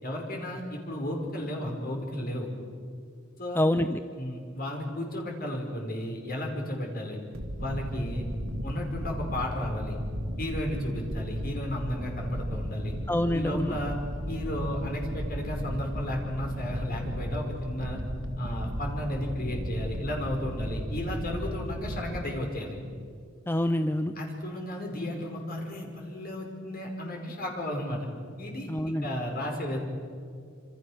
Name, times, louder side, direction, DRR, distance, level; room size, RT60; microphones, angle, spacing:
voice 1, 0.0-2.5 3.4-3.6 4.2-7.2 7.6-8.3 8.6-10.0 10.4-12.9 13.3-14.0 14.3-18.0 18.4-22.8 24.2-28.1 28.4-29.8, left 1 dB, 45° left, 1 dB, 5.2 m, -33 dB
voice 2, 3.6-4.0 13.1-13.7 23.5-24.1 28.7-29.1, left 1 dB, 10° left, 9 dB, 0.6 m, -26 dB
sound 1, 7.3-22.4, equal, 75° right, 2.4 m, -35 dB
27.0 x 26.5 x 6.5 m, 2.2 s
head